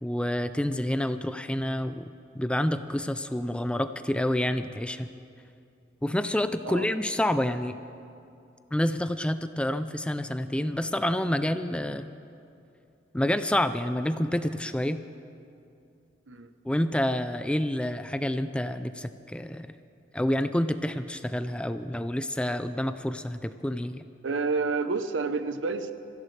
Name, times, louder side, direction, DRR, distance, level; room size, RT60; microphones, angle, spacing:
voice 1, 0.0-5.1 6.0-7.8 8.7-12.1 13.1-15.0 16.6-19.8 20.1-24.0, left 1 dB, 5° left, 10 dB, 0.4 m, -28 dB
voice 2, 24.2-25.9, right 4 dB, 75° right, 10 dB, 0.8 m, -29 dB
26.5 x 15.0 x 3.3 m, 2.6 s
head